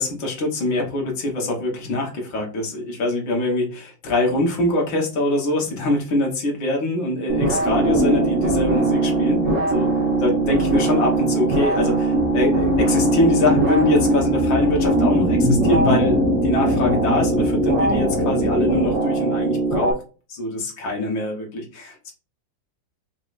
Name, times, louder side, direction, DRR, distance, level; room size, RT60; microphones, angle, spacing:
voice 1, 0.0-9.4 9.7-9.9 10.2-20.0 20.3-22.1, left 1 dB, 85° left, -1 dB, 2.1 m, -23 dB
sound 1, 7.3-19.9, right 3 dB, 70° right, 2.0 m, -22 dB
sound 2, 7.6-19.0, left 2 dB, 10° right, 1.2 m, -24 dB
5.1 x 3.3 x 2.5 m, 0.34 s
omnidirectional pair, 2.0 m